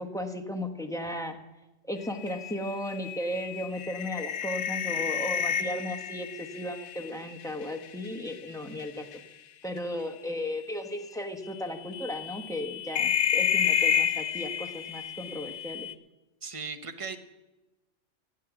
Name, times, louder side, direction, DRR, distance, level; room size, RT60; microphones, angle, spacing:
voice 1, 0.0-1.4 1.9-9.1 9.6-15.9, left 1 dB, 5° left, 5 dB, 1.1 m, -35 dB
sound 1, 2.0-8.4 8.7-9.2 10.3-10.4 10.9-11.0 11.9-15.9, left 8 dB, 85° left, 1.1 m, -30 dB
voice 2, 16.4-17.2, right 4 dB, 30° right, 9 dB, 0.9 m, -37 dB
15.5 x 9.4 x 6.0 m, 1.0 s
omnidirectional pair, 1.3 m